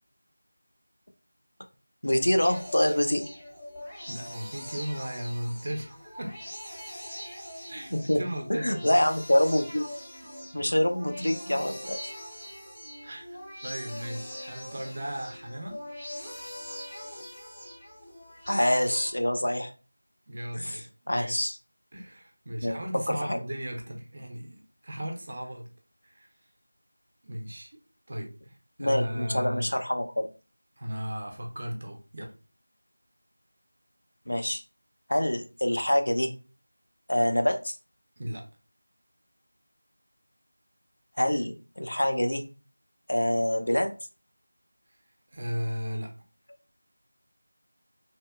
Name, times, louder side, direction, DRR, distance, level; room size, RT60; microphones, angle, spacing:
voice 1, 2.0-3.2 7.9-8.2 8.5-9.9 10.5-12.1 18.5-19.7 20.5-21.6 22.6-22.8 23.1-23.4 28.8-30.3 34.3-34.6 35.1-36.3 37.1-37.8 41.2-42.4 43.1-43.9, left 1 dB, 70° left, 6 dB, 0.4 m, -26 dB
sound 1, 2.4-19.1, left 1 dB, 5° left, 0.5 m, -42 dB
voice 2, 4.1-6.5 7.7-9.0 13.0-15.8 20.3-21.3 21.9-25.7 26.0-26.3 27.2-27.8 28.1-29.7 30.8-32.3 38.2-38.5 45.3-46.1, equal, 35° right, 2 dB, 0.5 m, -36 dB
2.7 x 2.0 x 2.3 m, 0.34 s
figure-of-eight pair, 170°, 0 cm